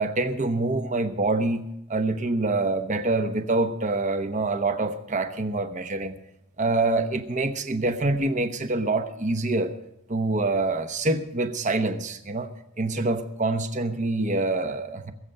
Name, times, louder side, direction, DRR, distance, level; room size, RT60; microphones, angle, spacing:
voice 1, 0.0-6.1 6.6-9.7 10.1-12.5 12.8-15.1, right 2 dB, 35° right, 8 dB, 1.0 m, -26 dB
21.0 x 7.8 x 5.6 m, 0.84 s
head